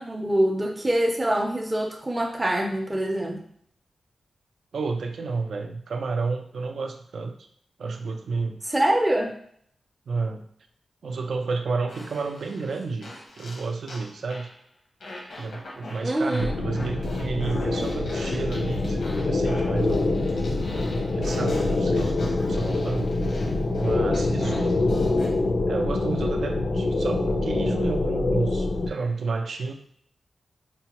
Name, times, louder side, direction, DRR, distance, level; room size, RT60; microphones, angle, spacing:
voice 1, 0.0-3.4 8.7-9.3 16.0-16.5, right 1 dB, 15° right, 2 dB, 0.5 m, -24 dB
voice 2, 4.7-7.3 7.8-8.6 10.1-10.5 11.0-14.5 15.4-20.1 21.1-22.2 22.4-23.1 23.7-25.0 25.7-29.7, right 4 dB, 75° right, 6 dB, 0.4 m, -31 dB
Fart, 11.9-14.6 15.0-25.4, left 1 dB, 85° left, 0.9 m, -41 dB
sound 1, 16.4-28.9, left 2 dB, 60° left, 0.4 m, -25 dB
4.6 x 2.2 x 2.9 m, 0.63 s
wide cardioid pair, 105°, 0 cm